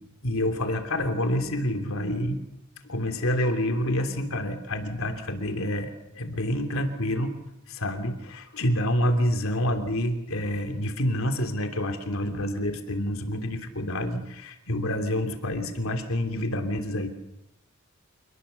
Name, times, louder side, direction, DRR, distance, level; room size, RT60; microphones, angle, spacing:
voice 1, 0.2-2.4 2.8-7.4 7.7-17.1, left 1 dB, 85° left, 6 dB, 3.1 m, -28 dB
29.0 x 20.0 x 7.1 m, 0.89 s
head